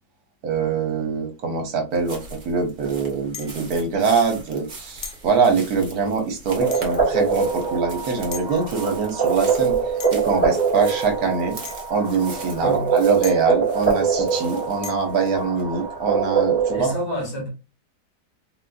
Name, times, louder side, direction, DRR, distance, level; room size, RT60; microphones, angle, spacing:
voice 1, 0.4-9.8 10.1-11.6 11.9-16.9, right 5 dB, 65° right, 1.2 m, -23 dB
sound 1, 1.9-16.8, right 2 dB, 35° right, 0.8 m, -42 dB
sound 2, 3.3-3.7 5.0-5.3 6.7-7.1 8.3-8.5 10.0-10.4 11.6-11.9 13.2-13.6 14.8-15.2, left 7 dB, 85° left, 0.5 m, -37 dB
sound 3, 6.6-16.9, right 5 dB, 10° left, 1.0 m, -24 dB
voice 2, 12.6-12.9 16.7-17.5, equal, 65° left, 2.1 m, -28 dB
3.9 x 2.4 x 2.3 m
omnidirectional pair, 1.8 m